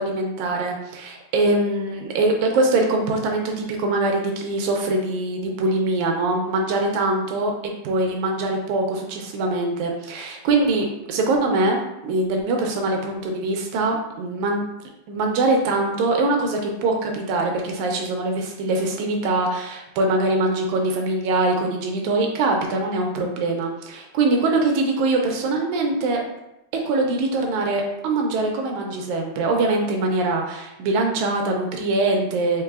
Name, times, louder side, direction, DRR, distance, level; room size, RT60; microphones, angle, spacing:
voice 1, 0.0-7.5 7.8-14.6 15.1-26.2 26.7-32.6, right 2 dB, 80° right, 1 dB, 1.8 m, -23 dB
4.6 x 3.6 x 2.3 m, 0.90 s
omnidirectional pair, 3.6 m